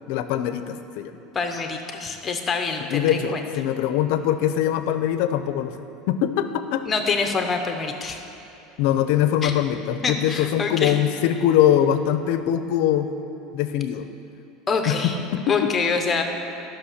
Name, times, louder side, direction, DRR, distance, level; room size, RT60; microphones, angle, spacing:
voice 1, 0.1-1.1 2.9-6.9 8.8-13.1 13.5-14.1 14.9-15.7, left 10 dB, 65° left, 10 dB, 0.6 m, -22 dB
voice 2, 1.3-3.4 6.9-8.2 9.4-9.5 10.0-11.0 14.7-15.2 15.5-16.2, left 4 dB, 20° left, 5 dB, 0.8 m, -25 dB
12.5 x 6.1 x 6.5 m, 2.8 s
cardioid pair, 160°, 0 cm